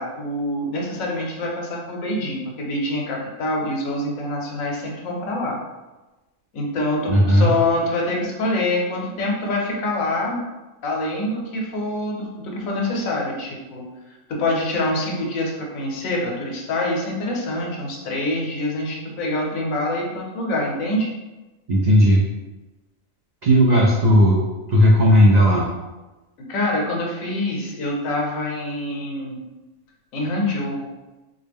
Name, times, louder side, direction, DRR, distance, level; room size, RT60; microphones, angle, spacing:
voice 1, 0.0-5.6 6.5-10.4 10.8-13.9 14.3-21.1 26.4-29.4 30.1-30.8, left 1 dB, 80° left, -1 dB, 1.2 m, -25 dB
voice 2, 7.1-7.5 21.7-22.2 23.4-24.4 24.7-25.7, equal, 80° right, -3 dB, 0.3 m, -15 dB
4.0 x 2.1 x 3.4 m, 1.1 s
omnidirectional pair, 1.4 m